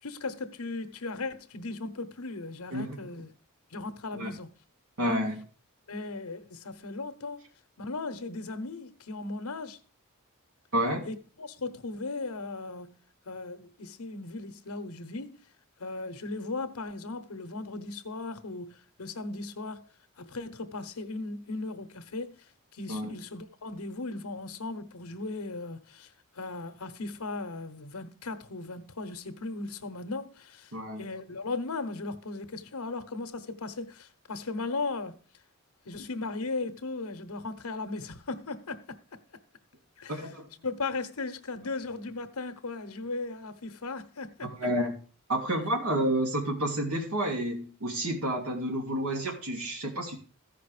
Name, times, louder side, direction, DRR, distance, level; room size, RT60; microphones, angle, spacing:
voice 1, 0.0-3.3 3.7-4.5 5.0-5.2 5.9-7.4 7.8-9.8 11.0-15.4 15.8-19.8 20.2-22.4 22.7-30.7 31.0-35.2 35.9-39.2 40.0-40.1 40.6-44.5, left 3 dB, 90° left, 1.0 m, -37 dB
voice 2, 2.7-3.1 4.1-4.3 5.0-5.4 10.7-11.1 22.9-23.1 30.7-31.0 40.1-40.5 44.4-45.0 45.3-50.2, right 1 dB, 80° right, 2.8 m, -30 dB
14.5 x 5.4 x 5.0 m
head